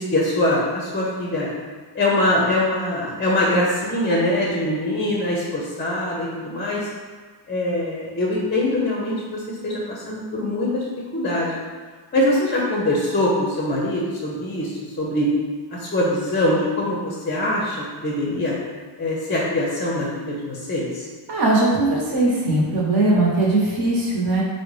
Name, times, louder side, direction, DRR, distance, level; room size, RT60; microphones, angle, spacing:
voice 1, 0.0-1.5 1.9-6.9 7.5-10.8 11.1-11.5 12.1-15.3 15.7-18.5 19.0-21.1, left 1 dB, 20° left, -4 dB, 0.5 m, -23 dB
voice 2, 21.3-24.4, right 2 dB, 45° right, -4 dB, 1.0 m, -19 dB
3.6 x 2.1 x 3.1 m, 1.5 s
cardioid pair, 90°, 50 cm